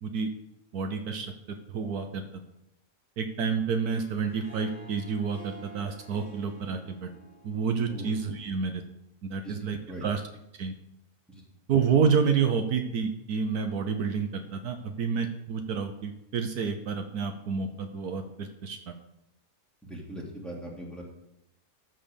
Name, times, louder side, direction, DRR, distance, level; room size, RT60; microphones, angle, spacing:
voice 1, 0.7-1.3 1.7-2.2 3.2-7.1 7.4-8.8 9.2-10.2 10.6-10.7 11.7-18.8, right 6 dB, 70° right, 6 dB, 1.3 m, -29 dB
Harp, 3.7-8.9, right 3 dB, 55° left, 4.7 m, -51 dB
voice 2, 19.9-21.0, right 1 dB, ahead, -3 dB, 2.6 m, -40 dB
13.5 x 4.5 x 6.9 m, 0.84 s
omnidirectional pair, 1.7 m